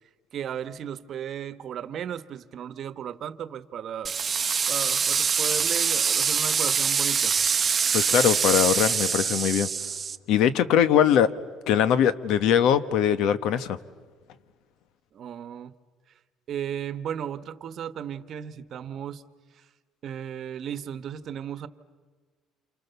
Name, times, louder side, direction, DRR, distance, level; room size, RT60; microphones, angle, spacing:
voice 1, 0.3-4.1 4.7-7.3 15.1-15.7 16.5-19.2 20.0-21.7, right 9 dB, 50° right, 13 dB, 1.2 m, -35 dB
sound 1, 4.0-10.2, right 6 dB, 30° right, 0.9 m, -24 dB
voice 2, 7.9-9.7 10.3-11.3 11.7-13.8, left 9 dB, 70° left, 13 dB, 1.3 m, -21 dB
29.0 x 28.5 x 6.9 m, 1.5 s
cardioid pair, 130°, 0 cm